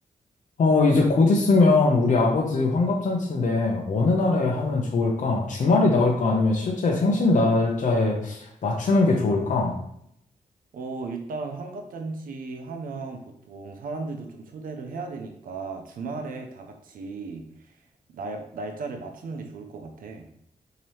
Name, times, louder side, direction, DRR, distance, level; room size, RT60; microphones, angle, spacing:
voice 1, 0.6-9.8, left 3 dB, 60° left, 0 dB, 0.7 m, -21 dB
voice 2, 10.7-17.8 18.1-20.2, right 3 dB, 80° right, 4 dB, 0.6 m, -36 dB
4.2 x 2.9 x 3.2 m, 0.70 s
cardioid pair, 70°, 14 cm